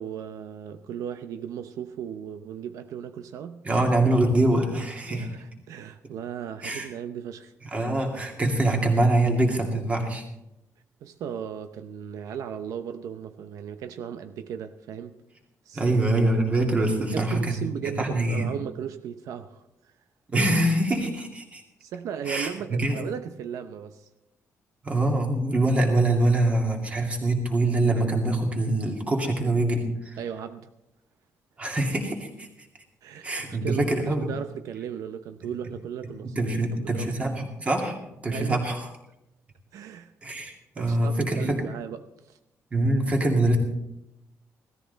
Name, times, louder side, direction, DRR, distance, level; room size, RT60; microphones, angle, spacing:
voice 1, 0.0-3.7 5.0-7.5 11.0-15.2 15.7-15.9 17.1-19.9 21.8-24.1 30.2-30.7 33.0-37.2 38.3-38.7 39.7-40.1 40.8-42.4, right 8 dB, 85° right, 0.7 m, -36 dB
voice 2, 3.6-5.3 6.6-6.9 7.7-10.2 15.7-17.6 18.0-18.5 20.3-21.6 22.3-23.0 24.8-30.2 31.6-32.5 33.2-34.3 36.2-38.0 38.2-38.8 40.2-41.6 42.7-43.6, right 2 dB, 25° right, 2.4 m, -24 dB
17.0 x 13.5 x 4.0 m
cardioid pair, 165°, 6 cm